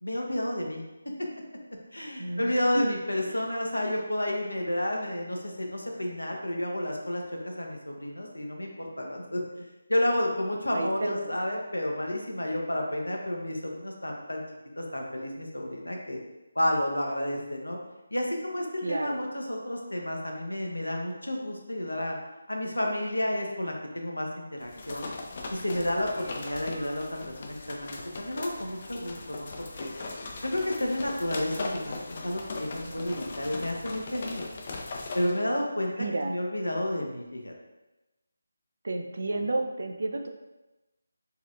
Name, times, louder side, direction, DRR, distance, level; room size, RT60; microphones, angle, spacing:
voice 1, 0.0-0.8 1.2-1.3 1.9-9.4 9.9-14.4 14.8-16.2 16.5-17.8 18.1-22.2 22.5-25.1 25.5-27.0 27.4-29.9 30.4-34.4 35.1-35.9 36.2-37.5, left 1 dB, 85° left, 0 dB, 0.7 m, -31 dB
voice 2, 2.2-2.9 3.3-3.4 10.7-11.3 18.8-19.2 32.8-33.2 36.0-36.4 38.8-40.3, right 2 dB, 60° right, 4 dB, 0.4 m, -31 dB
sound 1, 24.6-35.4, left 3 dB, 40° left, 0.4 m, -39 dB
4.1 x 2.5 x 2.4 m, 1.0 s
figure-of-eight pair, 155°, 0 cm